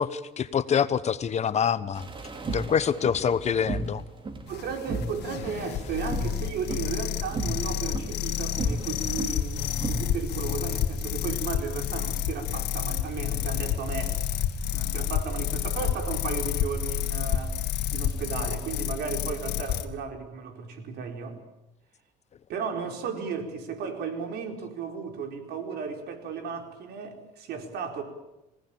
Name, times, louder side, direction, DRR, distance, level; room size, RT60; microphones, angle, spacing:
voice 1, 0.0-2.1 2.5-4.0, left 7 dB, 40° left, 15 dB, 1.1 m, -25 dB
sound 1, 1.9-10.0, right 2 dB, 30° right, 3.1 m, -35 dB
sound 2, 4.5-19.8, left 9 dB, 80° left, 2.1 m, -30 dB
voice 2, 4.5-14.2 14.7-17.6 17.9-21.4 22.5-28.0, right 5 dB, 75° right, 5 dB, 4.5 m, -34 dB
27.5 x 17.5 x 9.0 m, 0.93 s
cardioid pair, 110°, 17 cm